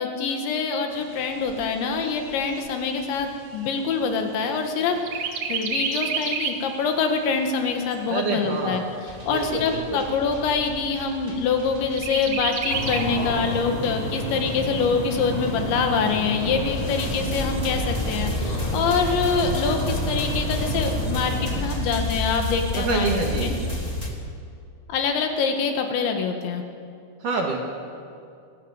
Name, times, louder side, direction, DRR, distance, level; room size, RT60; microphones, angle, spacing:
voice 1, 0.0-8.8 9.3-23.1 23.4-23.6 24.9-26.6, left 5 dB, 75° left, 4 dB, 3.9 m, -25 dB
Chirp tweet, 0.9-4.7 5.1-6.7 7.2-7.3 7.6-8.6 9.2-9.3 9.6-9.7 10.2-10.7 12.0-13.0, right 6 dB, 70° right, 1.4 m, -31 dB
voice 2, 8.1-8.9 9.2-10.1 22.7-23.5 27.2-27.6, right 4 dB, 55° right, 1 dB, 2.7 m, -27 dB
sound 1, 9.1-24.1, left 1 dB, 40° left, 0.5 m, -32 dB
sound 2, 12.7-21.6, equal, 20° left, 4.9 m, -30 dB
24.5 x 17.5 x 8.2 m, 2.4 s
omnidirectional pair, 5.4 m